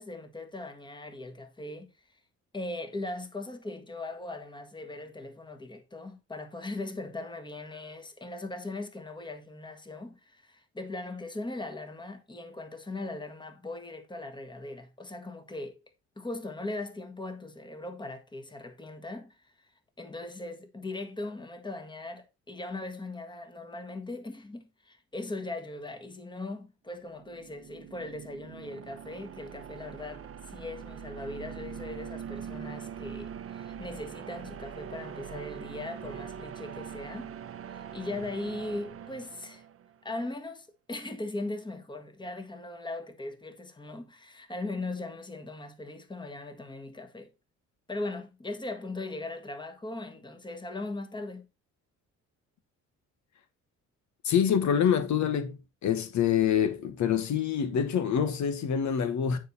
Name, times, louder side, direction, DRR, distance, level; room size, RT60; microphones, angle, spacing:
voice 1, 0.0-1.9 2.5-15.8 16.2-19.5 20.0-37.3 37.7-39.6 40.0-47.3 47.9-51.5, left 2 dB, 15° left, 1.6 m, -39 dB
sound 1, 27.0-40.0, right 8 dB, 50° right, 0.8 m, -43 dB
voice 2, 54.2-55.5 55.8-59.4, left 8 dB, 70° left, 1.3 m, -26 dB
9.2 x 4.7 x 4.1 m
cardioid pair, 90°, 30 cm